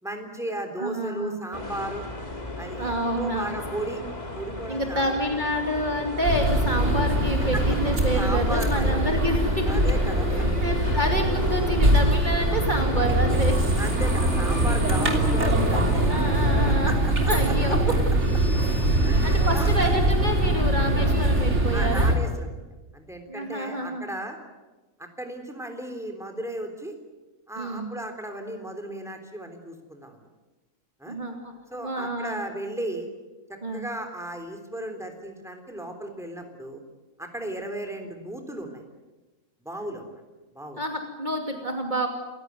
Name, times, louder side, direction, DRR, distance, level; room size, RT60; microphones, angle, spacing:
voice 1, 0.0-2.0 2.6-4.0 4.3-5.1 7.5-7.6 8.1-9.0 9.7-10.3 12.7-12.8 13.8-16.2 16.7-17.1 19.0-19.9 21.7-22.7 22.9-24.4 25.0-26.9 27.5-30.2 31.0-31.2 31.7-33.1 33.5-36.8 37.2-38.8 39.7-40.2 40.5-40.8, right 1 dB, ahead, 5 dB, 3.5 m, -35 dB
voice 2, 0.8-1.4 2.8-3.5 4.7-9.7 10.3-13.6 16.0-16.9 17.3-17.8 19.2-22.1 23.3-24.0 27.6-27.9 31.1-32.4 33.6-33.9 40.8-42.1, equal, 35° right, 2 dB, 2.7 m, -28 dB
sound 1, 1.5-16.8, left 2 dB, 30° left, 2.8 m, -35 dB
sound 2, 6.2-22.2, right 1 dB, 55° right, 3.6 m, -22 dB
29.0 x 16.0 x 9.5 m, 1.2 s
omnidirectional pair, 1.4 m